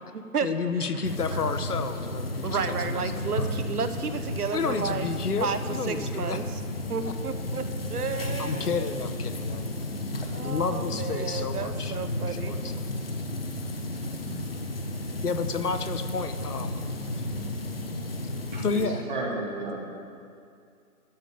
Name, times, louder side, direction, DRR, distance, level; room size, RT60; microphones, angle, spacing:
voice 1, 0.4-3.7 4.5-6.4 7.0-7.1 8.2-9.9 10.4-12.8 15.2-17.3 18.6-19.0 19.3-19.4, left 5 dB, 85° left, 9 dB, 1.1 m, -32 dB
sound 1, 1.0-18.9, left 1 dB, 40° left, 0.9 m, -33 dB
voice 2, 2.4-5.0 5.4-5.6 5.9-6.4 6.9-8.9 10.3-12.7 14.3-14.6, right 6 dB, 80° right, 9 dB, 1.0 m, -32 dB
voice 3, 18.5-18.8 19.1-19.8, right 2 dB, 30° right, -3 dB, 2.2 m, -32 dB
13.5 x 5.2 x 8.6 m, 2.3 s
hypercardioid pair, 175°, 45 cm